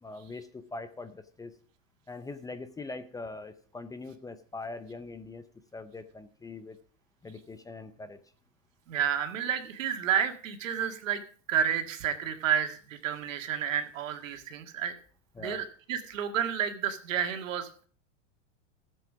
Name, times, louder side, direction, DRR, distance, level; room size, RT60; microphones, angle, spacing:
voice 1, 0.0-1.5 2.1-5.4 5.7-6.8 7.2-8.2 15.3-15.6, left 3 dB, 10° left, 12 dB, 0.5 m, -42 dB
voice 2, 8.9-11.2 11.5-15.0 15.4-17.9, right 8 dB, 85° right, 6 dB, 1.9 m, -30 dB
14.0 x 7.7 x 5.0 m, 0.43 s
supercardioid pair, 130°, 38 cm